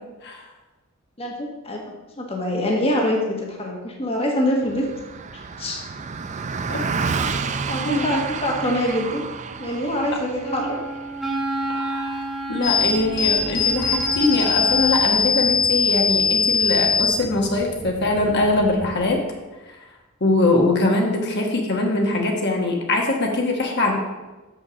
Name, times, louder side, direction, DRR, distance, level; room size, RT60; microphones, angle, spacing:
voice 1, 1.2-4.9 5.6-5.8 7.7-9.2 9.6-10.8, left 1 dB, 30° left, 0 dB, 1.2 m, -24 dB
Car passing by, 4.6-14.2, right 5 dB, 35° right, 0.4 m, -31 dB
Wind instrument woodwind instrument, 10.4-15.3, right 2 dB, ahead, 1.6 m, -30 dB
voice 2, 11.7-19.2 20.2-24.0, left 2 dB, 55° left, 1 dB, 1.3 m, -22 dB
sound 1, 12.6-19.0, left 4 dB, 75° left, 2.3 m, -22 dB
6.5 x 6.1 x 6.3 m, 1.2 s
head